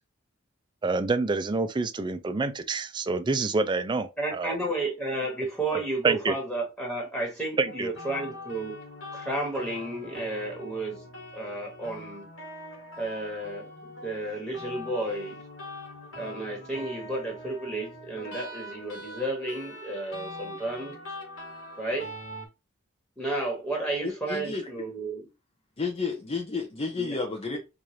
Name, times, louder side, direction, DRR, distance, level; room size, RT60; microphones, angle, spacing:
voice 1, 0.8-4.6 6.0-6.3 7.6-7.9, right 3 dB, 20° right, 0.4 m, -27 dB
voice 2, 4.2-8.7 9.1-11.0 11.3-12.2 13.0-13.7 14.0-15.4 16.2-20.9 21.8-22.1 23.2-25.3 26.9-27.2 27.5-27.6, right 2 dB, 5° left, 1.4 m, -32 dB
sound 1, 7.6-22.5, left 1 dB, 75° left, 1.5 m, -43 dB
voice 3, 24.0-24.7 25.8-27.6, left 4 dB, 30° left, 0.5 m, -31 dB
4.6 x 2.5 x 2.7 m
head